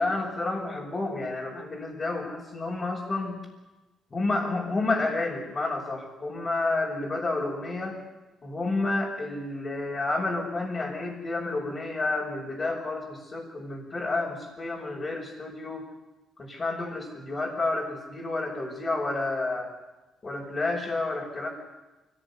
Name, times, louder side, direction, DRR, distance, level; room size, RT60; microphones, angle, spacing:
voice 1, 0.0-3.5 4.1-8.0 8.4-15.8 16.4-19.7 20.2-21.5, left 2 dB, 35° left, -4 dB, 5.4 m, -30 dB
24.0 x 19.0 x 9.6 m, 1.1 s
cardioid pair, 90°, 0 cm